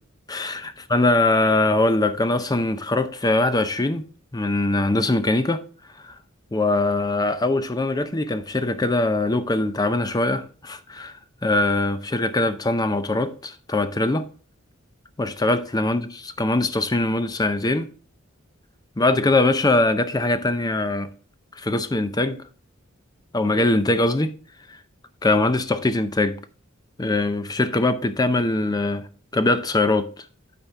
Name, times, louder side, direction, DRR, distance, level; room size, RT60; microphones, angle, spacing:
voice 1, 0.3-4.0 4.3-5.6 6.0-6.2 6.5-14.3 15.2-17.9 19.0-21.1 21.6-22.4 23.3-24.3 25.2-26.4 27.0-29.0 29.3-30.3, left 2 dB, 20° left, 0.6 m, -22 dB
12.0 x 4.3 x 3.5 m
head